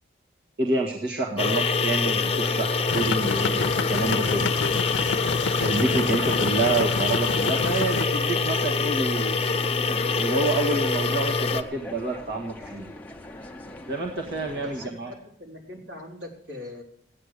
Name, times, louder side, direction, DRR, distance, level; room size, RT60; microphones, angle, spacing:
voice 1, 0.6-4.5 5.6-9.3 10.2-12.9 13.9-15.1, right 2 dB, 60° right, -1 dB, 1.8 m, -28 dB
voice 2, 1.3-1.8 14.6-16.8, left 2 dB, 85° right, -1 dB, 4.1 m, -39 dB
sound 1, 1.4-11.6, left 4 dB, 30° left, 0.9 m, -25 dB
sound 2, 1.9-14.9, left 1 dB, 10° left, 0.9 m, -42 dB
sound 3, 2.9-8.1, left 5 dB, 90° left, 0.5 m, -30 dB
15.5 x 9.9 x 6.7 m, 0.66 s
head